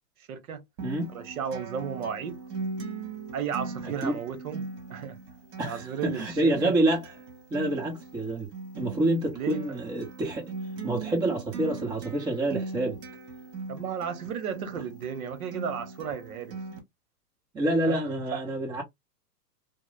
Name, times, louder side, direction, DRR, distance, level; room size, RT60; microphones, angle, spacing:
voice 1, 0.3-0.6 1.1-2.4 3.3-4.6 4.9-5.2 5.7-6.7 9.3-9.8 13.7-16.6 17.8-18.1 18.3-18.4, right 7 dB, 60° right, 1.0 m, -34 dB
Acoustic guitar, 0.8-16.8, right 4 dB, 40° right, 1.5 m, -40 dB
voice 2, 3.8-4.2 5.6-7.1 7.5-8.5 8.7-10.5 10.8-13.0 17.5-18.8, right 1 dB, 10° right, 0.6 m, -27 dB
4.6 x 2.0 x 2.3 m
hypercardioid pair, 130°, 49 cm